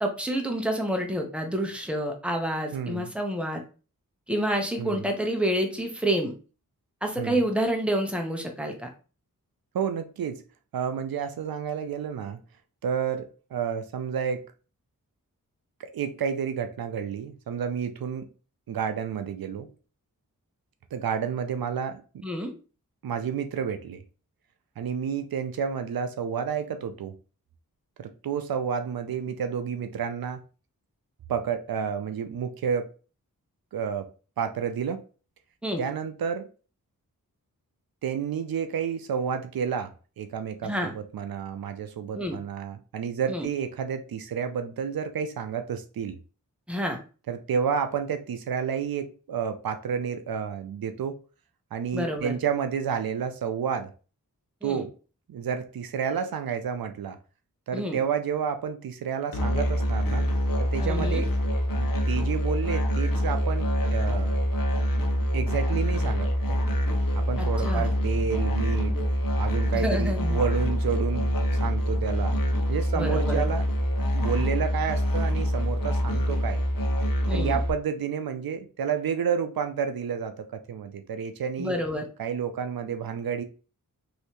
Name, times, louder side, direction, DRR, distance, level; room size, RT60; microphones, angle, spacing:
voice 1, 0.0-3.6 4.3-6.3 7.0-8.9 22.2-22.5 35.6-35.8 40.6-40.9 42.2-42.3 43.3-43.5 46.7-47.0 51.9-52.3 54.6-54.8 57.7-58.0 60.8-61.2 67.4-67.9 69.7-70.4 72.9-73.4 77.3-77.6 81.6-82.0, equal, 5° right, 0.9 m, -28 dB
voice 2, 2.7-3.1 4.8-5.1 7.2-7.4 9.7-10.4 10.7-12.4 12.8-14.4 15.8-18.3 18.7-19.7 20.9-22.0 23.0-24.0 24.8-27.1 28.0-30.4 31.3-32.9 33.7-34.1 34.4-35.0 35.8-36.5 38.0-39.9 40.2-46.2 47.3-51.2 51.7-53.9 54.6-54.9 55.3-57.2 57.7-60.3 60.6-61.3 61.8-64.4 65.3-66.7 67.1-69.0 69.4-71.3 71.6-72.4 72.7-73.6 74.1-76.6 77.3-81.7 82.2-83.4, right 7 dB, 75° right, 0.5 m, -30 dB
Musical instrument, 59.3-77.7, equal, 70° left, 0.8 m, -25 dB
3.1 x 2.7 x 2.9 m
cardioid pair, 50°, 36 cm